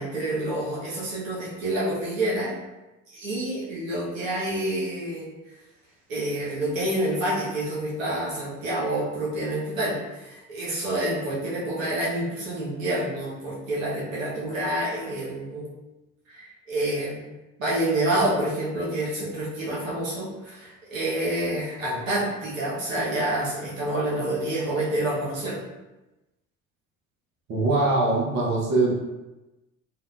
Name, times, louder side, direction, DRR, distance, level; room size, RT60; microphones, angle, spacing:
voice 1, 0.0-2.5 3.1-5.3 6.1-15.7 16.4-17.2 17.6-25.6, right 1 dB, 75° right, -7 dB, 0.9 m, -28 dB
voice 2, 27.5-28.9, right 2 dB, 45° right, -4 dB, 0.8 m, -22 dB
3.5 x 2.1 x 2.3 m, 1.0 s
figure-of-eight pair, 55°, 40 cm